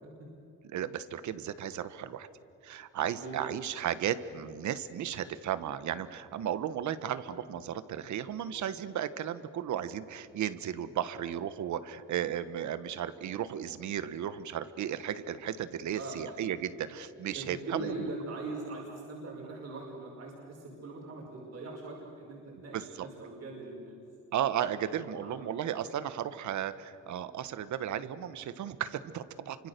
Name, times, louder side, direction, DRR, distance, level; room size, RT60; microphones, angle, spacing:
voice 1, 0.7-2.3 2.6-17.9 22.7-23.1 24.3-29.7, right 10 dB, 70° right, 13 dB, 1.2 m, -35 dB
voice 2, 3.2-3.5 7.3-7.5 16.0-16.2 17.3-24.0 24.8-25.4, right 3 dB, 55° right, -3 dB, 5.8 m, -41 dB
28.5 x 25.0 x 6.8 m, 2.7 s
cardioid pair, 90°, 30 cm